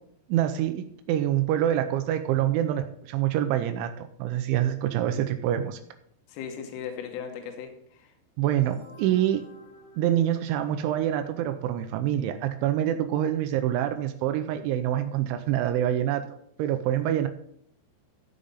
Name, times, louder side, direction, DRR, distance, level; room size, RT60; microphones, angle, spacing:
voice 1, 0.3-5.8 8.4-9.4 10.0-16.2 16.6-17.3, right 11 dB, 85° right, 8 dB, 2.9 m, -26 dB
voice 2, 6.3-8.1, left 7 dB, 85° left, 5 dB, 3.7 m, -38 dB
sound 1, 8.4-11.1, left 2 dB, 55° left, 0.7 m, -51 dB
14.0 x 5.1 x 5.5 m, 0.68 s
omnidirectional pair, 5.6 m